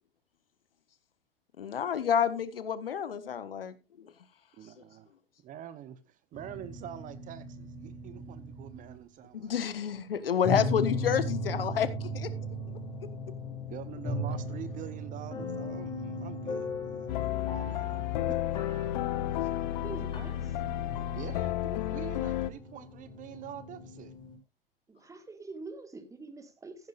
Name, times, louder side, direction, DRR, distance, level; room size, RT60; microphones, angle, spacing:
voice 1, 1.6-4.1 9.3-12.3, left 8 dB, 75° left, 1.4 m, -29 dB
voice 2, 4.6-5.1 5.4-9.6 13.7-18.4 21.1-24.1, right 11 dB, 25° right, 0.9 m, -45 dB
Piano Improvisation, 6.3-9.0 10.4-24.4, left 1 dB, 15° left, 4.5 m, -38 dB
sound 1, 17.1-22.5, left 13 dB, 50° left, 0.8 m, -32 dB
voice 3, 19.8-20.6 24.9-26.9, right 3 dB, 10° right, 1.9 m, -45 dB
15.0 x 10.5 x 2.5 m
figure-of-eight pair, 105°, 29 cm